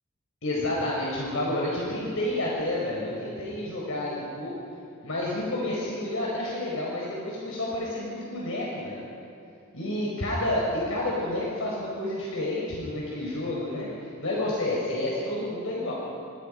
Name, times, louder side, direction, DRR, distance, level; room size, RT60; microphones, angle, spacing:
voice 1, 0.4-4.5 5.0-9.0 9.7-15.9, left 1 dB, 70° left, -4 dB, 5.1 m, -30 dB
27.0 x 24.5 x 5.4 m, 2.7 s
head